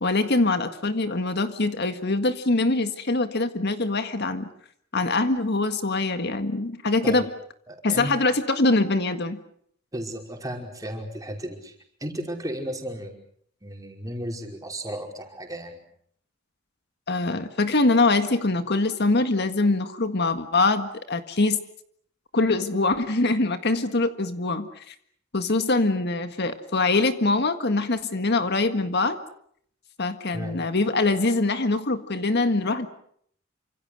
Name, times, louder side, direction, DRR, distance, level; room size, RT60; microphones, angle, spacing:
voice 1, 0.0-4.5 4.9-7.3 7.8-9.4 17.1-21.6 22.3-24.9 25.3-29.2 30.0-32.9, left 2 dB, 55° left, 9 dB, 1.7 m, -23 dB
voice 2, 7.7-8.1 9.9-11.7 12.0-13.2 13.6-15.8 30.3-30.6, right 1 dB, 15° right, 2 dB, 5.2 m, -34 dB
28.5 x 26.0 x 6.6 m, 0.66 s
head